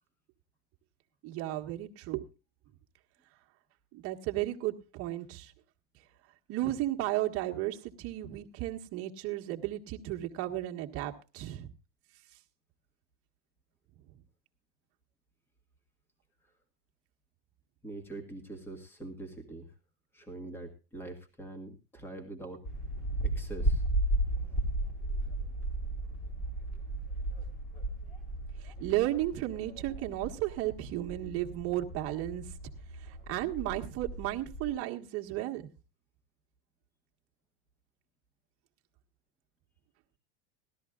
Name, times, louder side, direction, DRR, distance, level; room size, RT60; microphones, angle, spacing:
voice 1, 1.2-2.2 3.9-5.5 6.5-11.7 28.6-32.4 33.0-35.7, right 15 dB, 45° right, 2 dB, 1.5 m, -34 dB
voice 2, 17.8-19.7 20.1-22.6 23.2-23.8, right 2 dB, 5° left, 7 dB, 1.9 m, -44 dB
sound 1, 22.6-34.7, right 1 dB, 25° left, 3.3 m, -35 dB
18.0 x 13.0 x 2.4 m, 0.31 s
supercardioid pair, 150°, 32 cm